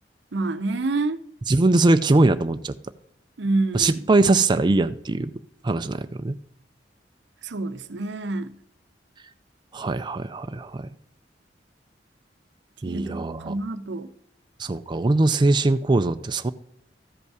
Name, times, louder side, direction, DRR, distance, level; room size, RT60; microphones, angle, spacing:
voice 1, 0.3-1.2 3.4-4.0 7.4-8.5 12.9-14.1, right 2 dB, 75° right, 0.7 m, -27 dB
voice 2, 1.5-2.8 3.7-5.3 5.6-6.4 9.7-10.9 12.8-13.6 14.6-16.5, right 2 dB, 25° right, 0.4 m, -21 dB
13.5 x 5.4 x 4.8 m
head